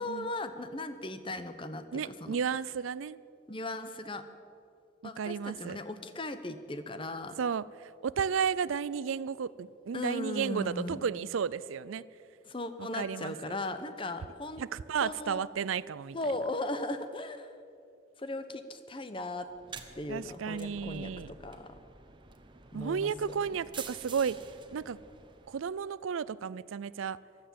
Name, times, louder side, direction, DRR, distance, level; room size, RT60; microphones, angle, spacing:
voice 1, 0.0-2.4 3.5-4.3 5.0-7.4 9.9-11.0 12.5-14.6 15.0-15.4 16.1-17.5 18.2-19.5 20.0-21.8 22.7-23.3, left 2 dB, 25° left, 10 dB, 0.8 m, -37 dB
voice 2, 1.9-3.2 5.2-5.8 7.4-7.6 8.0-12.0 12.8-13.3 14.6-16.2 20.1-21.3 22.7-24.4 24.7-25.0 25.5-27.2, right 7 dB, 90° right, 19 dB, 0.4 m, -33 dB
sound 1, 19.5-25.9, right 5 dB, 25° right, 0.9 m, -49 dB
15.5 x 11.5 x 7.5 m, 2.5 s
head